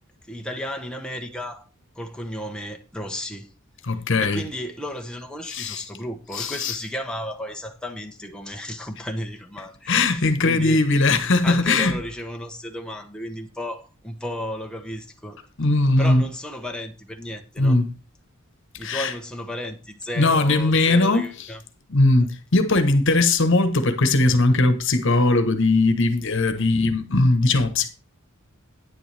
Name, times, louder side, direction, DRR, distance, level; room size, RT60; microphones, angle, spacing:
voice 1, 0.3-1.7 1.9-3.5 4.2-10.8 11.4-15.4 16.0-17.8 18.8-21.6 26.6-26.7, equal, 5° left, 1.0 m, -33 dB
voice 2, 3.8-4.4 5.5-5.8 6.3-6.8 9.9-12.0 15.6-16.3 17.6-17.9 18.8-19.1 20.2-21.3 21.9-27.9, left 2 dB, 65° left, 1.2 m, -19 dB
10.0 x 9.7 x 3.4 m
head